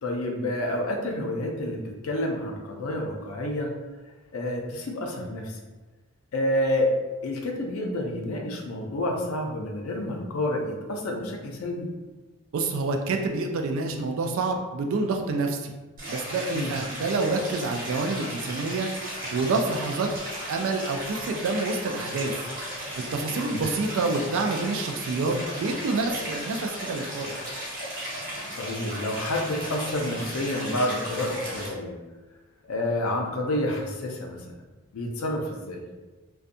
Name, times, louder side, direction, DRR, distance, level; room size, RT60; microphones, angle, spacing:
voice 1, 0.0-3.7 4.3-5.6 6.3-7.0 7.2-11.9 16.5-16.7 23.4-23.6 28.6-32.0 32.6-34.6 34.9-35.8, left 1 dB, 75° left, 1 dB, 0.5 m, -29 dB
voice 2, 12.5-15.7 16.1-20.1 20.5-22.3 22.8-27.3, right 3 dB, 65° right, 4 dB, 0.3 m, -28 dB
Stream, 16.0-31.7, equal, 40° right, 0.8 m, -36 dB
2.6 x 2.2 x 2.5 m, 1.2 s
head